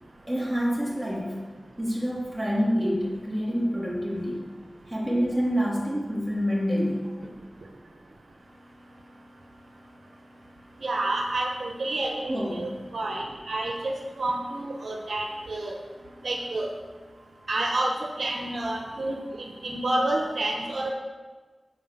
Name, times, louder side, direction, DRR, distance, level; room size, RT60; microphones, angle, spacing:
voice 1, 0.3-1.4 1.8-4.5 4.9-7.1 12.3-12.8, equal, 15° right, -5 dB, 3.6 m, -27 dB
voice 2, 10.8-15.8 16.2-16.7 17.5-20.9, right 2 dB, 80° right, 1 dB, 1.2 m, -29 dB
10.0 x 5.0 x 7.9 m, 1.4 s
cardioid pair, 50°, 0 cm